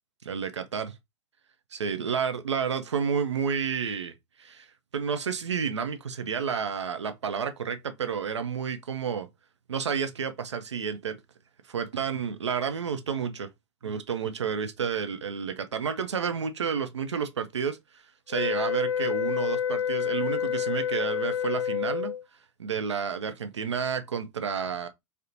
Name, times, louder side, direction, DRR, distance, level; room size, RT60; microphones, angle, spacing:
voice 1, 0.2-1.0 1.7-4.1 4.4-4.7 4.9-9.3 9.7-11.2 11.7-13.5 13.8-17.8 18.3-22.1 22.6-24.9, right 6 dB, 80° right, 0.4 m, -30 dB
sound 1, 18.3-22.2, left 8 dB, 75° left, 0.4 m, -28 dB
2.8 x 2.1 x 2.5 m
figure-of-eight pair, 85°, 15 cm